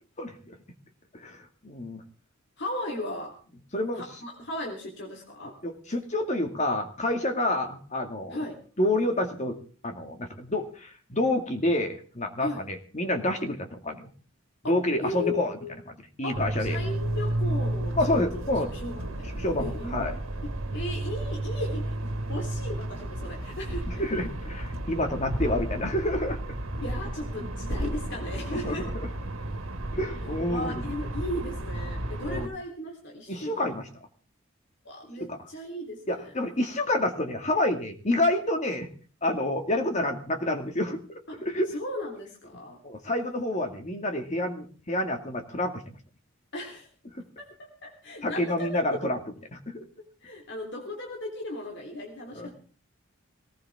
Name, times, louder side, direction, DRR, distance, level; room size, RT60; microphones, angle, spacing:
voice 1, 0.2-0.6 1.1-2.0 3.7-4.0 5.6-8.4 8.8-9.6 9.8-14.1 14.7-15.6 15.9-16.8 17.9-18.7 19.3-20.2 23.9-26.6 28.5-29.1 29.9-30.8 32.3-32.5 33.3-33.9 35.2-35.4 36.1-38.9 39.2-41.0 41.4-41.8 42.8-46.0 47.1-47.2 48.2-49.2 49.5-49.8 52.3-52.5, left 1 dB, 35° left, 5 dB, 2.2 m, -28 dB
voice 2, 2.6-3.4 3.9-5.6 8.3-8.6 12.4-12.6 14.6-15.7 16.2-18.4 18.7-20.2 20.4-24.0 26.8-28.9 30.5-33.7 34.8-36.2 41.3-41.4 41.7-42.8 46.5-46.9 47.4-49.1 50.0-52.6, left 1 dB, 60° left, 0 dB, 3.7 m, -36 dB
sound 1, 16.3-32.5, right 1 dB, 85° right, 1.9 m, -32 dB
19.5 x 19.5 x 3.6 m, 0.40 s
head